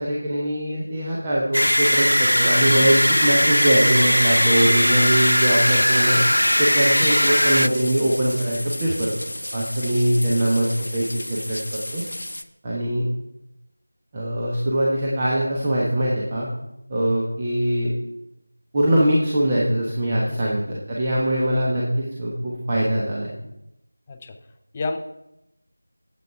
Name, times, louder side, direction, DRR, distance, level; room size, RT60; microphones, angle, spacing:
voice 1, 0.0-2.9 3.2-6.2 6.6-9.1 9.5-11.6 11.9-12.0 12.6-13.0 14.1-16.5 16.9-17.9 18.7-23.4, right 1 dB, 20° right, -5 dB, 1.2 m, -22 dB
sound 1, 1.5-7.7, equal, 90° left, 0.3 m, -19 dB
sound 2, 7.3-12.4, left 1 dB, 70° left, 0.8 m, -33 dB
voice 2, 20.3-20.6 24.1-24.4 24.7-25.0, left 3 dB, 15° left, 6 dB, 0.6 m, -30 dB
9.2 x 8.0 x 4.7 m, 0.87 s
figure-of-eight pair, 170°, 0 cm